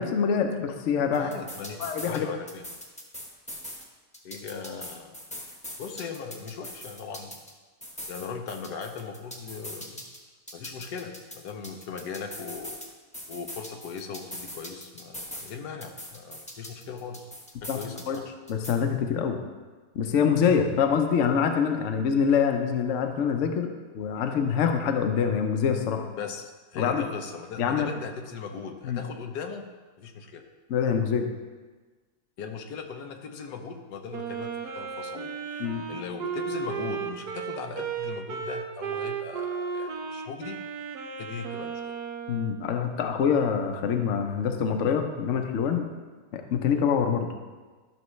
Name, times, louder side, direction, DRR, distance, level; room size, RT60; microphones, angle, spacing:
voice 1, 0.0-1.3 1.8-2.3 17.7-17.8 18.1-18.2 18.5-19.4 19.9-23.7 23.9-26.0 26.8-27.0 27.6-27.9 28.8-29.0 30.7-31.3 35.6-35.8 42.3-45.8 46.3-47.3, left 7 dB, 55° left, 5 dB, 1.0 m, -25 dB
voice 2, 1.1-2.6 4.2-5.2 5.8-7.4 8.1-10.0 10.5-12.8 13.3-17.3 17.6-18.3 26.2-29.7 30.0-30.5 32.4-40.6 41.2-41.8 46.7-46.8, left 5 dB, 85° left, 5 dB, 1.3 m, -38 dB
sound 1, 1.1-2.2 2.5-3.8 4.1-7.5 7.8-10.2 10.5-12.9 13.1-15.5 15.8-18.2 18.5-18.7, equal, 5° left, 0.9 m, -41 dB
Wind instrument woodwind instrument, 34.1-42.6, right 6 dB, 75° right, 1.3 m, -34 dB
12.5 x 6.2 x 3.2 m, 1.3 s
omnidirectional pair, 1.7 m